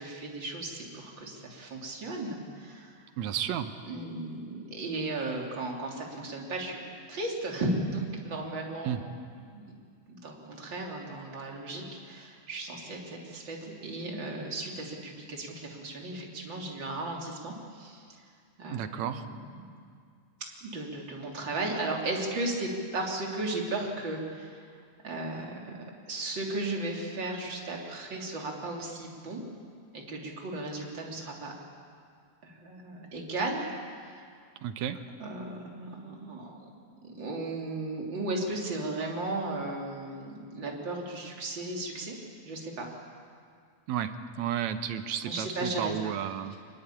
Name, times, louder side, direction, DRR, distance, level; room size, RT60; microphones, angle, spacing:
voice 1, 0.0-2.9 3.9-8.9 9.4-9.6 10.1-18.2 18.6-19.7 20.6-24.6 25.0-29.4 29.9-31.5 32.4-33.7 34.0-34.2 35.2-36.7 37.0-42.2 42.5-42.9 45.3-45.9, right 2 dB, 40° right, -1 dB, 3.7 m, -35 dB
voice 2, 3.2-3.7 8.8-9.0 18.7-19.3 34.6-35.0 43.9-46.6, right 9 dB, 75° right, 9 dB, 2.3 m, -32 dB
24.5 x 21.0 x 8.7 m, 2.2 s
omnidirectional pair, 3.3 m